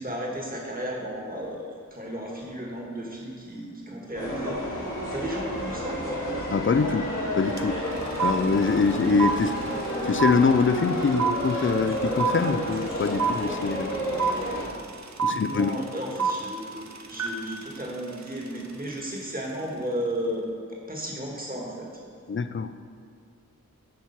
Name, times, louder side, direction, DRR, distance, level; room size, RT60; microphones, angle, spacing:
voice 1, 0.0-6.2 14.1-14.3 15.2-22.0, equal, 25° right, -2 dB, 1.5 m, -34 dB
sound 1, 4.1-14.7, equal, 65° left, 1.8 m, -31 dB
voice 2, 6.5-7.1 7.3-7.8 8.2-9.5 10.0-13.9 15.2-15.7 22.3-22.7, left 5 dB, 40° left, 11 dB, 0.4 m, -24 dB
sound 2, 7.6-7.7 7.9-19.0, right 6 dB, 55° right, 0.6 m, -29 dB
8.4 x 4.3 x 5.8 m, 2.3 s
wide cardioid pair, 45°, 33 cm